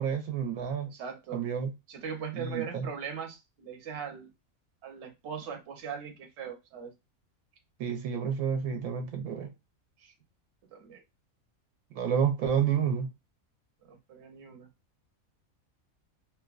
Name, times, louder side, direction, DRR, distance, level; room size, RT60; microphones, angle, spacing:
voice 1, 0.0-0.9 1.3-1.7 2.4-2.9 7.8-9.5 11.9-13.1, right 7 dB, 80° right, 1.1 m, -29 dB
voice 2, 0.8-1.4 1.9-4.3 4.8-6.9 10.0-10.1 10.7-11.0 13.9-14.7, right 7 dB, 60° right, 0.9 m, -40 dB
2.9 x 2.1 x 2.3 m
omnidirectional pair, 1.5 m